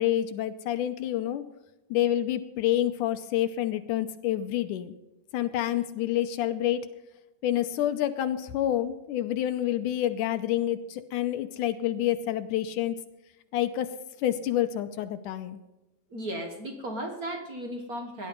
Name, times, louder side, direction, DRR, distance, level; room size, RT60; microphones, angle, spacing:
voice 1, 0.0-1.4 1.9-4.9 5.3-6.9 7.4-13.0 13.5-13.9 14.2-15.6, left 12 dB, 80° left, 10 dB, 2.1 m, -28 dB
voice 2, 16.1-18.3, right 1 dB, 60° right, 5 dB, 0.9 m, -35 dB
17.5 x 11.5 x 5.3 m, 0.98 s
omnidirectional pair, 3.9 m